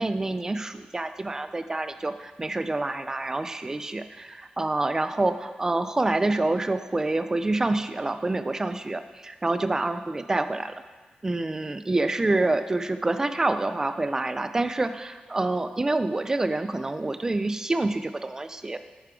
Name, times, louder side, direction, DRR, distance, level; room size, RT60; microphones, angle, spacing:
voice 1, 0.0-10.7 11.2-18.8, right 2 dB, 20° right, 10 dB, 0.3 m, -27 dB
8.1 x 4.6 x 3.7 m, 1.4 s
wide cardioid pair, 120°, 3 cm